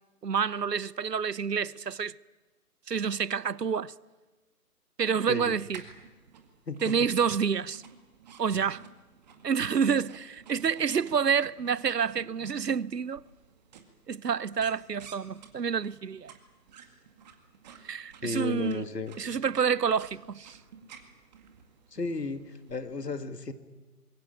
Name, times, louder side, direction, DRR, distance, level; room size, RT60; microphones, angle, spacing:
voice 1, 0.2-2.2 2.9-3.9 5.0-5.8 6.8-7.8 8.4-8.8 9.4-13.2 14.1-16.3 17.8-18.8 19.2-20.6, right 6 dB, 90° right, 0.9 m, -28 dB
sound 1, 5.7-22.7, right 6 dB, 25° right, 2.1 m, -53 dB
voice 2, 18.2-19.2 21.9-23.5, left 3 dB, 80° left, 2.4 m, -34 dB
25.5 x 21.5 x 8.8 m
figure-of-eight pair, 150°, 47 cm